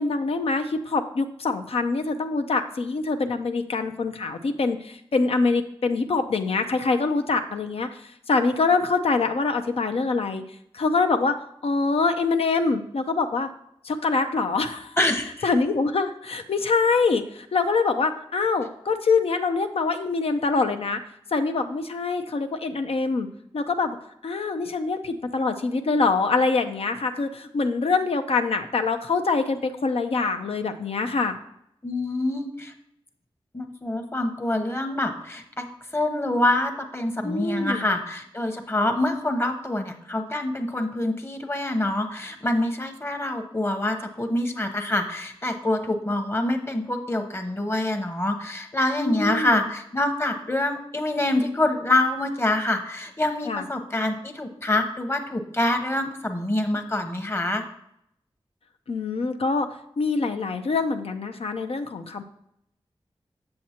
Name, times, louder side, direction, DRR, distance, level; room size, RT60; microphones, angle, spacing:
voice 1, 0.0-7.9 8.3-10.4 10.7-11.3 11.6-13.5 13.8-15.0 15.4-21.0 21.3-23.3 23.5-24.0 24.2-31.4 37.2-37.9 49.0-49.6 53.5-53.6 58.9-59.7 60.0-62.2, left 4 dB, 80° left, 7 dB, 0.6 m, -24 dB
voice 2, 15.0-15.5 31.8-32.7 33.5-35.6 35.9-57.6, left 1 dB, 25° left, 5 dB, 0.9 m, -26 dB
7.7 x 7.5 x 2.9 m, 0.74 s
wide cardioid pair, 100°, 10 cm